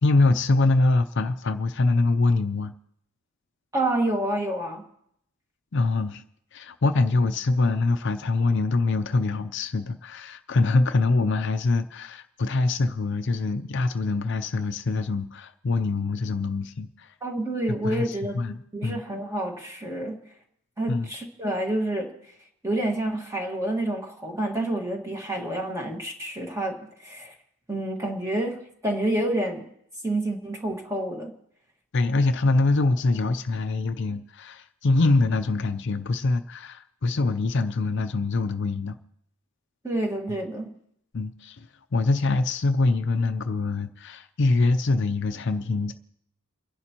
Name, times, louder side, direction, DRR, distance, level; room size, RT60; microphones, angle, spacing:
voice 1, 0.0-2.7 5.7-6.2 6.5-17.1 17.7-19.0 20.9-21.1 31.9-39.0 41.1-41.7 41.9-45.9, left 3 dB, 55° left, 9 dB, 0.5 m, -24 dB
voice 2, 3.7-4.9 17.2-18.4 18.7-20.2 20.8-22.1 22.6-26.8 27.0-27.3 27.7-29.7 30.0-31.3 39.8-40.7, right 1 dB, 15° right, 1 dB, 1.6 m, -28 dB
29.0 x 11.0 x 2.9 m, 0.73 s
head